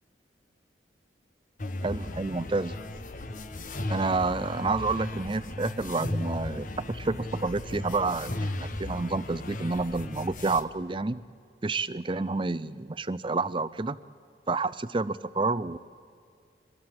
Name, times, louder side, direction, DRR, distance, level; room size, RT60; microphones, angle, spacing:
sound 1, 1.6-10.6, left 1 dB, 45° left, 1.1 m, -36 dB
voice 1, 1.8-2.8 3.9-11.2 11.6-14.0 14.5-15.8, right 3 dB, 25° right, 16 dB, 0.5 m, -29 dB
23.5 x 22.0 x 7.7 m, 2.4 s
head